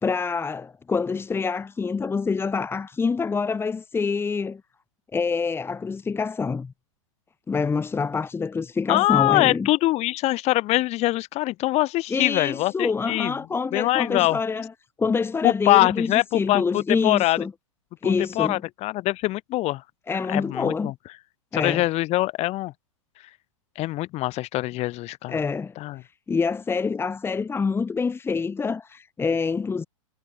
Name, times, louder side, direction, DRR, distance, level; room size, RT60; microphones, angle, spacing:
voice 1, 0.0-4.6 5.1-6.7 7.5-9.7 12.1-14.7 15.0-17.5 18.0-18.6 20.1-20.9 21.5-21.9 25.3-25.7 26.3-29.9, left 5 dB, 15° left, 2.0 m, -26 dB
voice 2, 8.9-13.3 13.7-14.4 15.4-17.4 18.0-19.8 20.1-20.9 21.5-22.7 23.7-25.4 25.8-26.0, left 18 dB, 40° left, 4.9 m, -23 dB
hypercardioid pair, 110°, 17 cm